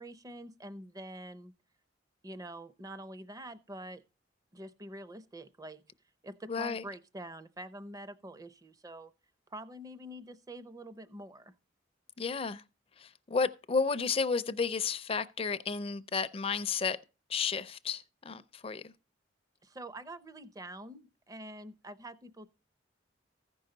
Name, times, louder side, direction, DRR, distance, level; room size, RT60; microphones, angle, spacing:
voice 1, 0.0-1.5 2.2-4.0 4.5-5.8 6.2-9.1 9.5-11.5 19.6-22.5, right 1 dB, 20° right, 0.5 m, -46 dB
voice 2, 6.5-6.8 12.2-12.6 13.0-17.0 17.3-18.9, left 5 dB, 30° left, 0.4 m, -32 dB
14.5 x 5.4 x 3.9 m
head